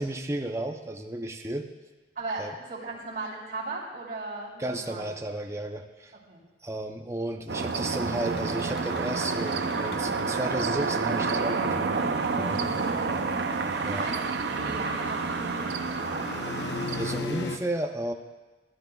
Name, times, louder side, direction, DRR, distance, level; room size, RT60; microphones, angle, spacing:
voice 1, 0.0-1.7 2.4-2.5 4.6-6.1 6.6-11.9 12.4-12.7 13.8-14.1 17.0-18.1, right 1 dB, 15° right, 2 dB, 0.6 m, -33 dB
voice 2, 2.1-5.1 6.1-6.4 12.9-13.4 13.9-14.2 14.5-16.3, right 3 dB, 50° right, -6 dB, 3.4 m, -37 dB
sound 1, 7.5-17.2, right 4 dB, 65° right, 0.5 m, -29 dB
sound 2, 8.0-17.6, left 2 dB, 65° left, 0.7 m, -39 dB
16.0 x 12.0 x 2.3 m, 1.2 s
head